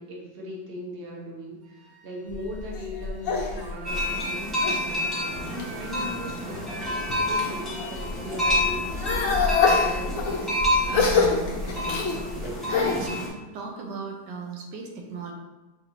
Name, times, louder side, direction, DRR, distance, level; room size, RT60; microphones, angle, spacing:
voice 1, 0.0-5.1 5.5-10.5, left 1 dB, 45° right, -3 dB, 0.8 m, -39 dB
Wind instrument woodwind instrument, 1.6-8.0, right 2 dB, 60° right, 1.2 m, -48 dB
sound 1, 2.3-4.9 5.4-6.0 6.5-7.6 7.9-13.1, left 4 dB, 65° left, 0.9 m, -26 dB
sound 2, 3.8-13.3, left 1 dB, ahead, 0.8 m, -29 dB
voice 2, 10.9-12.0 12.7-13.1 13.5-15.3, right 3 dB, 80° right, 1 dB, 1.3 m, -36 dB
5.6 x 2.6 x 3.0 m, 1.1 s
omnidirectional pair, 1.9 m